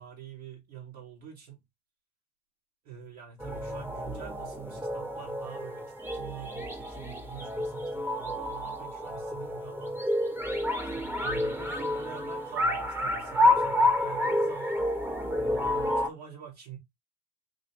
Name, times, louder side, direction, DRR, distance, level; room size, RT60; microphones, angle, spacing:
voice 1, 0.0-1.6 2.8-10.0 10.9-14.9 15.4-16.8, right 9 dB, 60° right, 2.4 m, -46 dB
sound 1, 3.4-16.1, left 1 dB, 5° right, 1.1 m, -29 dB
6.2 x 2.4 x 3.3 m
figure-of-eight pair, 65°, 35 cm